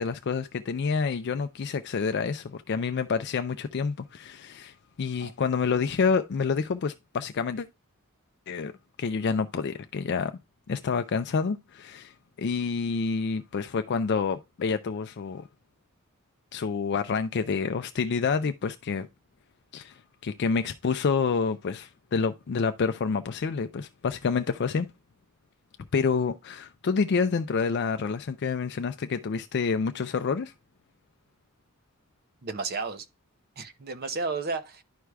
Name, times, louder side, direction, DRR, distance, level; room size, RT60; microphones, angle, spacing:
voice 1, 0.0-7.7 8.5-8.7 9.0-10.4 10.7-15.5 16.5-19.1 19.7-24.9 25.9-30.5, left 5 dB, 50° left, 0.4 m, -28 dB
voice 2, 32.4-33.1 33.6-34.8, right 4 dB, 45° right, 0.7 m, -32 dB
11.0 x 4.7 x 2.3 m
head